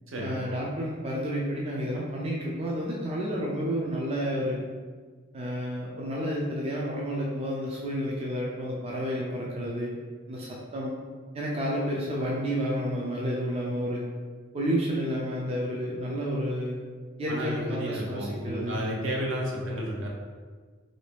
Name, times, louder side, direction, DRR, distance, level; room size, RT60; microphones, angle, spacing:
voice 1, 0.2-4.6 5.3-9.9 10.3-10.9 11.3-14.0 14.5-16.8 17.2-18.8, equal, 30° right, -4 dB, 0.4 m, -30 dB
voice 2, 17.3-20.1, right 1 dB, 70° right, -1 dB, 0.7 m, -32 dB
2.9 x 2.6 x 3.4 m, 1.5 s
head